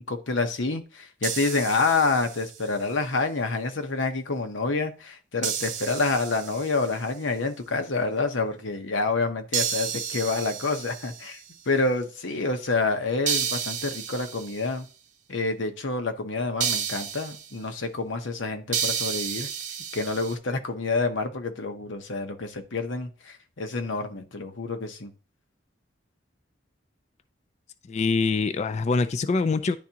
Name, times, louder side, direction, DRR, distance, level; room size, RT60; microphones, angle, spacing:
voice 1, 0.0-11.4 11.7-14.9 15.3-19.5 19.9-25.1, left 3 dB, 85° left, 6 dB, 1.0 m, -28 dB
sound 1, 1.2-2.7 5.4-7.0 9.5-11.4 13.3-14.7 16.6-17.5 18.7-20.3, right 8 dB, 40° right, 0.8 m, -31 dB
voice 2, 27.9-29.8, left 4 dB, 35° left, 10 dB, 0.4 m, -24 dB
10.5 x 3.5 x 2.9 m, 0.36 s
head